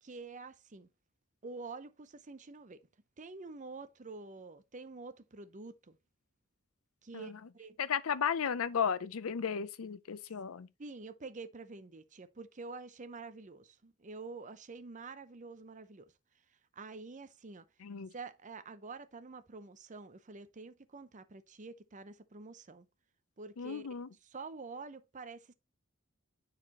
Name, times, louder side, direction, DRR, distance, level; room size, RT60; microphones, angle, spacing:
voice 1, 0.0-0.9 1.4-2.9 3.2-6.0 7.0-7.8 10.8-16.1 16.7-17.6 18.1-22.9 23.4-23.9 24.2-25.5, right 3 dB, 35° right, 0.7 m, -47 dB
voice 2, 7.8-10.7 17.8-18.1 23.6-24.1, left 7 dB, 85° left, 0.6 m, -34 dB
9.9 x 4.2 x 3.0 m
head